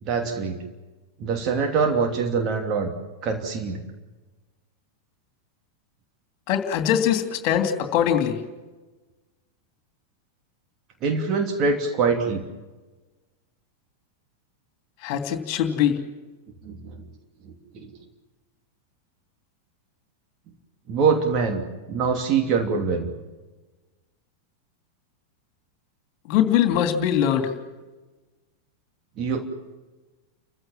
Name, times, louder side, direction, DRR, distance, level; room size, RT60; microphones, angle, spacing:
voice 1, 0.0-0.6 1.2-2.9 3.2-3.8 11.0-12.5 16.6-17.0 17.4-17.9 20.9-21.6 21.9-23.1 29.2-29.4, right 5 dB, 35° right, 4 dB, 2.8 m, -24 dB
voice 2, 6.5-8.4 15.0-16.0 26.3-27.5, left 9 dB, 45° left, 7 dB, 3.0 m, -22 dB
30.0 x 15.5 x 7.5 m, 1.2 s
figure-of-eight pair, 90°, 0 cm